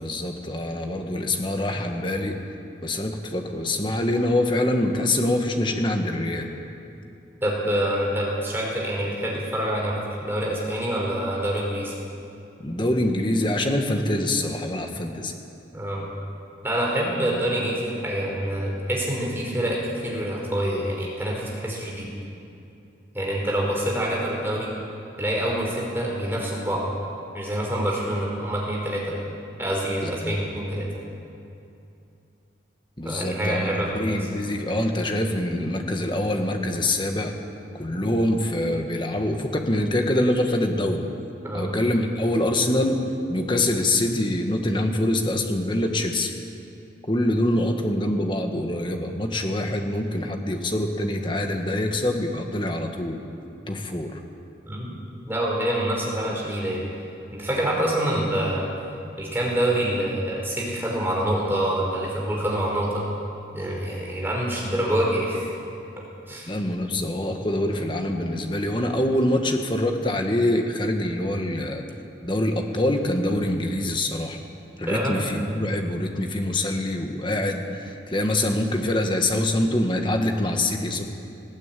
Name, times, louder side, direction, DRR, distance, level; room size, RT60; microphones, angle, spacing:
voice 1, 0.0-2.4 2.8-6.5 12.6-15.3 30.0-30.4 33.0-37.3 37.7-41.1 41.5-43.0 43.3-46.3 47.1-53.2 53.7-54.2 66.5-71.8 72.2-74.4 74.8-81.0, left 1 dB, 25° left, 4 dB, 1.6 m, -25 dB
voice 2, 7.4-11.9 14.5-14.6 15.7-16.0 16.6-22.1 23.1-24.7 25.2-26.8 27.3-29.0 29.6-30.9 33.0-34.3 37.0-37.1 41.4-41.7 42.7-42.8 43.7-44.1 54.7-54.9 55.2-56.9 57.3-58.7 59.2-63.1 63.5-65.5 66.3-66.5 74.9-75.2, right 1 dB, 10° right, -3 dB, 4.7 m, -26 dB
19.5 x 16.0 x 9.1 m, 2.6 s
head